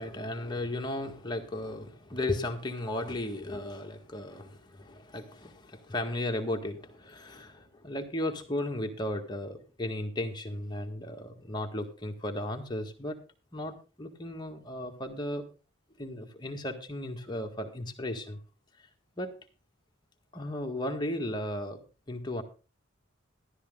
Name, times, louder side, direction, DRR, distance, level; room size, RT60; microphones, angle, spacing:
voice 1, 0.0-13.2 13.5-15.4 16.0-18.4 19.2-19.3 20.3-21.8 22.1-22.4, left 1 dB, 20° left, 3 dB, 1.7 m, -35 dB
13.0 x 12.5 x 3.8 m, 0.32 s
head